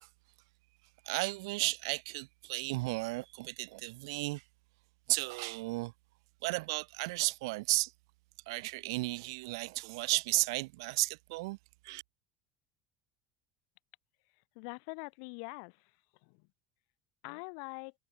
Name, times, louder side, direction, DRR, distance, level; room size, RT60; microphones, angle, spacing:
voice 1, 1.1-4.4 5.1-5.9 6.4-7.9 8.5-11.6 11.8-12.0, right 24 dB, 85° right, 0.5 m, -34 dB
voice 2, 14.5-16.0 16.2-16.5 17.2-17.9, left 40 dB or more, 65° left, 0.7 m, -44 dB
cardioid pair, 160°, 2 cm